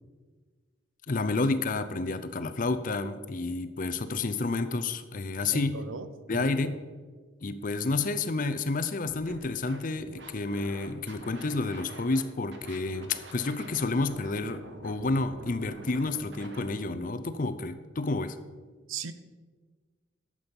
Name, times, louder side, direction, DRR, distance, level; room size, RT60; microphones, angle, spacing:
voice 1, 1.1-5.8 6.3-6.8 7.4-18.4, left 3 dB, 40° left, 12 dB, 0.5 m, -30 dB
voice 2, 5.5-6.1 6.3-6.4 18.9-19.1, right 5 dB, 85° right, 11 dB, 0.7 m, -36 dB
Scratching (performance technique), 9.0-9.3 9.7-12.2 12.5-16.7, right 2 dB, 60° right, 1.4 m, -47 dB
11.5 x 7.6 x 5.3 m, 1.4 s
head